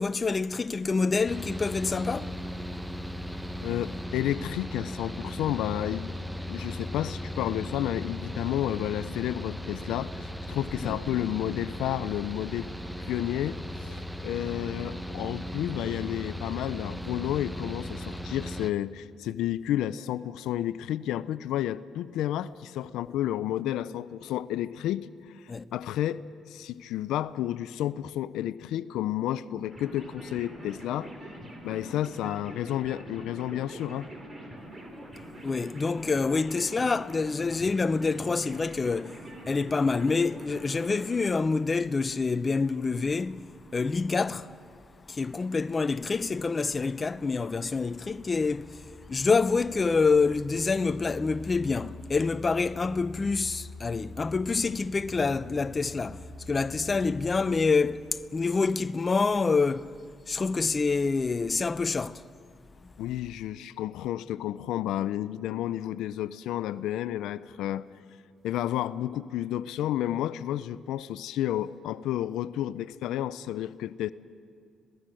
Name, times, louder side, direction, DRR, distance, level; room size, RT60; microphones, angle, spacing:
voice 1, 0.0-2.3 10.8-11.0 25.5-25.7 35.4-39.1 39.5-43.5 43.7-44.5 45.1-58.0 58.3-59.9 60.3-62.2, left 4 dB, 30° left, 0.6 m, -27 dB
Mechanical fan, 1.3-18.7, equal, 5° right, 0.8 m, -37 dB
voice 2, 3.6-6.1 6.5-12.7 13.1-25.1 25.3-25.4 25.7-26.2 26.5-31.1 31.6-34.1 63.0-67.9 68.4-74.1, left 12 dB, 90° left, 0.5 m, -31 dB
sound 1, 29.7-41.3, right 1 dB, 25° right, 4.3 m, -44 dB
sound 2, 46.2-57.4, left 2 dB, 75° right, 5.4 m, -46 dB
26.0 x 17.5 x 7.7 m
cardioid pair, 90°, 0 cm